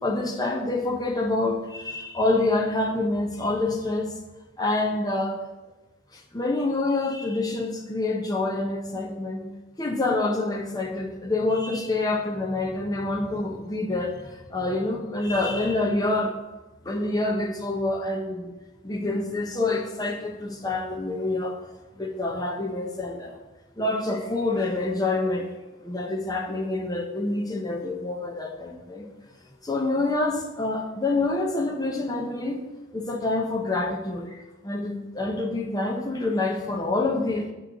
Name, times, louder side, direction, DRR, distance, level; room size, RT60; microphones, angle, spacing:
voice 1, 0.0-4.1 4.6-5.4 6.1-9.5 9.8-16.4 16.8-18.5 18.8-21.6 21.9-23.4 23.8-25.5 25.8-29.1 29.6-32.6 32.9-37.5, left 2 dB, 20° left, 1 dB, 0.9 m, -27 dB
8.5 x 3.2 x 6.5 m, 1.1 s
head